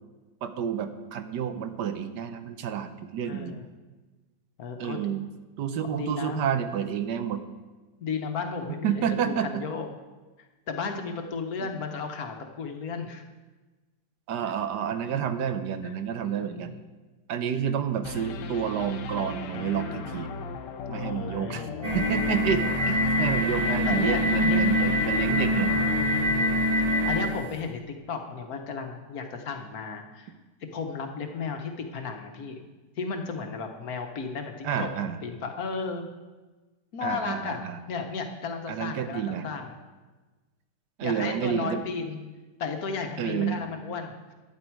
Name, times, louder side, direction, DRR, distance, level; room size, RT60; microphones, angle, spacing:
voice 1, 0.4-3.5 4.8-5.3 5.6-7.4 8.8-9.6 11.6-11.7 14.3-16.7 17.3-20.3 20.9-21.7 21.9-25.7 34.6-35.2 37.0-37.8 38.7-39.5 41.0-41.8 43.2-43.6, right 8 dB, 75° right, 9 dB, 1.3 m, -29 dB
voice 2, 3.3-3.6 4.6-5.1 6.0-6.4 8.0-9.9 10.4-13.2 14.4-14.5 15.1-15.2 15.8-15.9 16.2-16.8 20.9-21.8 23.9-24.7 26.1-30.3 30.7-32.6 33.0-36.0 36.9-39.8 41.0-42.2 42.6-44.3, left 5 dB, 60° left, 5 dB, 1.4 m, -34 dB
sound 1, 18.0-27.1, left 4 dB, 80° left, 1.4 m, -37 dB
sound 2, 21.8-27.4, left 1 dB, 20° right, 1.8 m, -24 dB
12.0 x 9.8 x 4.6 m, 1.2 s
omnidirectional pair, 1.9 m